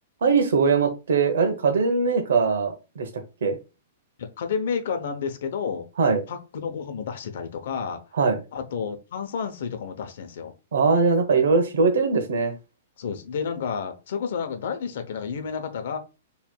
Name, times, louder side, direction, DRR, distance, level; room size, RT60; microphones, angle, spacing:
voice 1, 0.2-3.1 3.4-3.6 6.0-6.2 8.2-8.4 10.7-12.5, right 4 dB, 80° right, 1.0 m, -21 dB
voice 2, 4.2-5.9 6.3-8.0 8.5-10.5 13.0-16.0, left 6 dB, 60° left, 0.7 m, -30 dB
4.4 x 3.2 x 2.2 m
hypercardioid pair, 170°, 0 cm